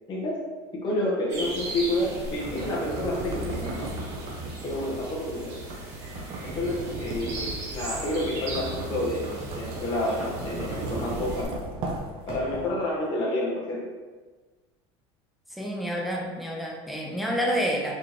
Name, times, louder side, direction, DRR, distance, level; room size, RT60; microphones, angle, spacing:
voice 1, 0.1-0.4 0.7-3.9 4.6-5.6 6.4-11.7 12.3-13.9, left 1 dB, 30° left, -5 dB, 1.1 m, -29 dB
sound 1, 1.3-11.4, right 1 dB, 90° right, 1.5 m, -39 dB
sound 2, 1.9-12.9, right 2 dB, 40° right, 0.7 m, -36 dB
voice 2, 15.6-18.0, equal, ahead, -2 dB, 0.8 m, -28 dB
4.5 x 3.8 x 3.0 m, 1.3 s
supercardioid pair, 135°, 14 cm